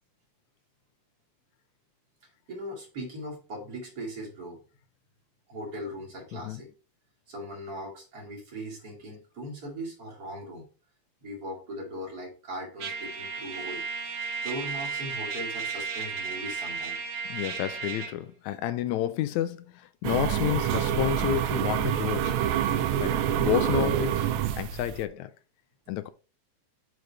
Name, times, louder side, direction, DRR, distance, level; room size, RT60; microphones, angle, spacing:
voice 1, 2.5-4.6 5.5-6.7 7.3-10.6 11.2-17.0, equal, 30° right, 2.5 m, -39 dB
Trumpet, 12.8-18.1, right 5 dB, 60° right, 2.3 m, -34 dB
voice 2, 17.3-22.5 23.0-24.3 24.6-25.3 25.9-26.1, left 13 dB, 80° left, 1.8 m, -30 dB
sound 1, 20.0-25.1, right 10 dB, 75° right, 1.9 m, -26 dB
6.6 x 4.7 x 4.1 m
omnidirectional pair, 3.6 m